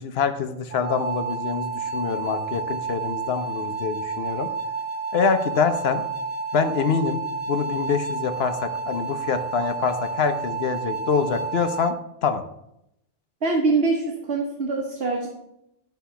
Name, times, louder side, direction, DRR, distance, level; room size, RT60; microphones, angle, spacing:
voice 1, 0.0-4.5 5.1-6.0 6.5-7.2 7.5-11.9 12.2-12.4, left 6 dB, 70° left, 9 dB, 1.0 m, -25 dB
sound 1, 0.7-11.9, right 4 dB, 45° right, 0.5 m, -30 dB
voice 2, 13.4-15.3, right 3 dB, 70° right, -1 dB, 1.3 m, -23 dB
10.0 x 3.4 x 5.6 m, 0.81 s
omnidirectional pair, 1.1 m